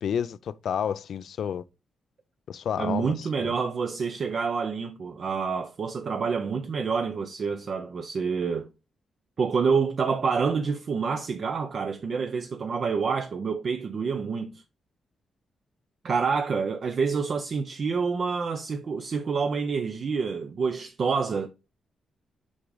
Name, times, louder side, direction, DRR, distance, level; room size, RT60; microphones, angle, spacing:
voice 1, 0.0-1.6 2.5-3.5, left 8 dB, 65° left, 0.4 m, -30 dB
voice 2, 2.8-8.7 9.4-14.6 16.0-21.5, right 5 dB, 45° right, 0.6 m, -27 dB
6.1 x 4.8 x 3.9 m
cardioid pair, 130°, 0 cm